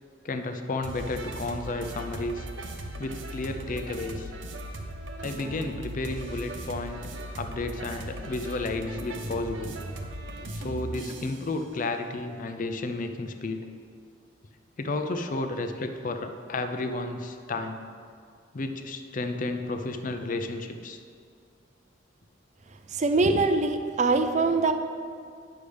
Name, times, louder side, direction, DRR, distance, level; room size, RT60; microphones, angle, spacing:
voice 1, 0.2-2.5 3.0-4.3 5.2-7.0 7.3-9.8 10.5-13.6 14.8-17.8 18.5-21.0, left 2 dB, 45° left, 7 dB, 0.5 m, -32 dB
sound 1, 0.8-11.4, right 1 dB, 85° right, 0.8 m, -38 dB
voice 2, 22.9-24.7, right 3 dB, 40° right, 7 dB, 0.5 m, -23 dB
9.8 x 6.6 x 3.4 m, 2.2 s
head